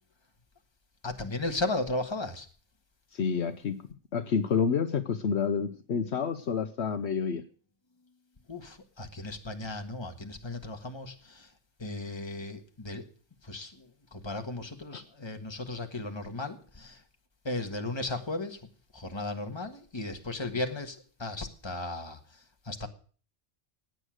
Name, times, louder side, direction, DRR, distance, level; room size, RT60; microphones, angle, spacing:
voice 1, 1.0-2.5 8.5-11.5 11.8-13.1 13.4-17.0 17.4-18.7 18.9-22.4 22.6-22.9, left 2 dB, 25° left, 1.6 m, -36 dB
voice 2, 3.1-3.8 4.1-7.4 14.9-15.0, left 6 dB, 65° left, 1.1 m, -29 dB
16.5 x 9.2 x 6.4 m
omnidirectional pair, 1.2 m